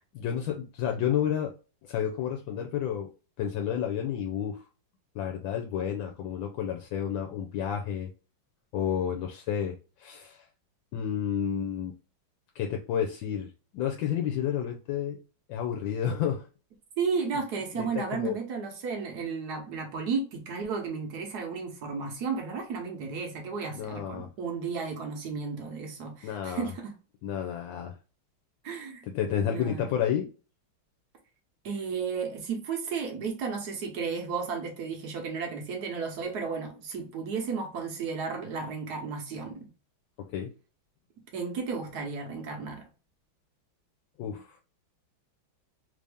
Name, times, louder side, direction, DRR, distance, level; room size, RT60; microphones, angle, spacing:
voice 1, 0.1-1.5 1.8-3.1 3.4-4.6 5.1-8.1 8.7-10.5 10.9-11.9 12.5-15.2 15.5-16.5 17.8-18.4 23.7-24.3 26.2-26.7 27.2-28.0 29.1-30.3 40.2-40.5 44.2-44.6, left 9 dB, 75° left, 1.2 m, -31 dB
voice 2, 17.0-26.9 28.6-29.0 29.4-29.9 31.6-39.7 41.3-42.9, right 5 dB, 60° right, 1.3 m, -33 dB
3.4 x 2.7 x 3.4 m
omnidirectional pair, 2.2 m